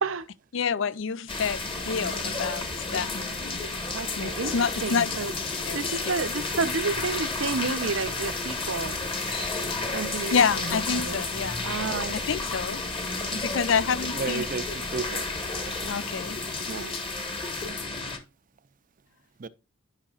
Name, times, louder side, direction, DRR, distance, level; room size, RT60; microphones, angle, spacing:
voice 1, 0.5-3.6 4.2-5.2 5.7-5.9 10.3-11.7 12.3-12.8 13.3-14.4 15.9-16.4, left 6 dB, 65° left, 0.5 m, -28 dB
sound 1, 1.3-18.2, left 3 dB, 25° left, 1.5 m, -31 dB
voice 2, 3.9-4.5 4.8-5.4 5.7-9.0 9.9-11.2 11.6-12.5 16.7-17.0, right 4 dB, 75° right, 0.8 m, -31 dB
voice 3, 14.1-15.3 15.6-16.1 19.4-19.5, right 4 dB, 40° right, 0.5 m, -33 dB
11.5 x 5.9 x 2.4 m
head